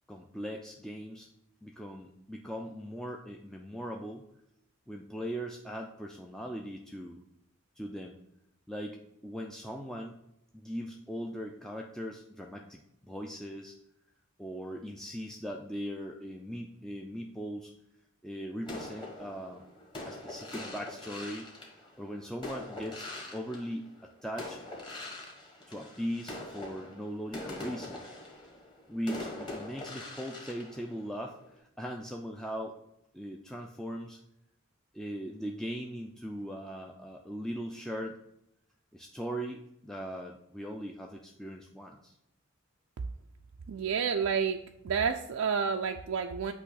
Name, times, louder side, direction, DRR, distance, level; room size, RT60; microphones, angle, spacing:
voice 1, 0.1-1.3 1.6-4.2 4.9-7.2 7.8-8.2 8.7-10.2 10.5-13.8 14.4-17.7 18.2-19.6 20.0-21.5 21.8-24.6 25.7-28.0 28.9-32.7 33.1-34.2 34.9-38.2 38.9-42.2, equal, ahead, 1 dB, 0.4 m, -39 dB
sound 1, 18.6-24.0 24.4-31.5, left 2 dB, 20° left, 1.6 m, -43 dB
voice 2, 43.7-44.6 44.8-46.5, right 6 dB, 75° right, 4 dB, 0.4 m, -29 dB
8.3 x 3.0 x 6.3 m, 0.78 s
head